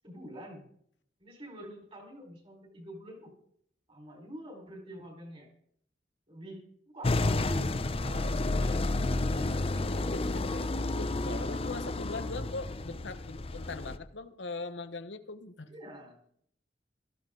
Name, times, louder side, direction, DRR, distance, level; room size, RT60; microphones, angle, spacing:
voice 1, 0.0-0.6 1.2-3.3 3.9-5.5 6.3-10.1 15.7-16.2, equal, 30° right, 1 dB, 4.6 m, -46 dB
sound 1, 7.0-14.0, left 2 dB, 35° left, 0.7 m, -31 dB
voice 2, 9.9-15.7, left 3 dB, 90° left, 10 dB, 1.1 m, -41 dB
18.0 x 14.0 x 3.9 m, 0.67 s
head